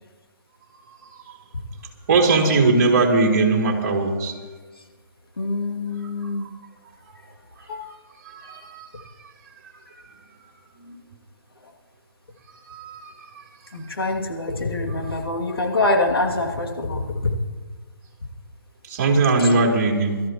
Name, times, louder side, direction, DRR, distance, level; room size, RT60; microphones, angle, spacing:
voice 1, 0.7-1.4 2.0-4.3 6.2-6.3 7.9-8.0 8.2-8.9 9.8-10.1 10.8-10.9 12.5-13.4 14.0-14.1 18.8-20.2, right 3 dB, 40° right, 0 dB, 3.3 m, -21 dB
voice 2, 5.4-6.4 7.7-7.8 13.7-17.0, left 2 dB, 85° left, 0 dB, 2.8 m, -24 dB
23.5 x 13.5 x 3.1 m, 1.4 s
hypercardioid pair, 145°, 12 cm